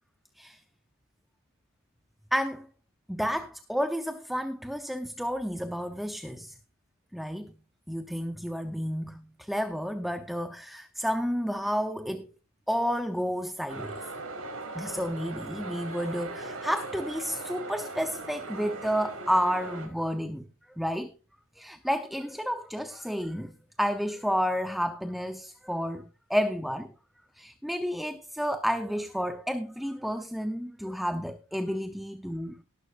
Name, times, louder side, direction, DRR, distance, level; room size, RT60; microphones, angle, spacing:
voice 1, 2.3-2.7 3.1-6.5 7.1-7.5 7.9-12.3 12.7-14.0 14.7-21.1 21.5-26.9 27.3-32.6, equal, ahead, 0.7 m, -31 dB
sound 1, 13.7-19.9, right 2 dB, 85° right, 5.3 m, -39 dB
18.5 x 11.5 x 2.5 m
head